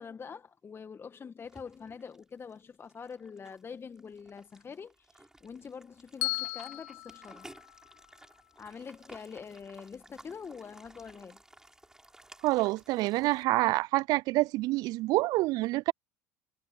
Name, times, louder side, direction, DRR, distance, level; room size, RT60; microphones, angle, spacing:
voice 1, 0.0-7.5 8.6-11.4, left 6 dB, 30° left, 1.8 m, -45 dB
sound 1, 1.4-13.4, right 1 dB, 5° right, 6.0 m, -56 dB
Bell, 6.2-8.4, left 34 dB, 70° left, 1.1 m, -37 dB
voice 2, 12.4-15.9, right 20 dB, 55° right, 0.3 m, -27 dB
hypercardioid pair, 65°, 8 cm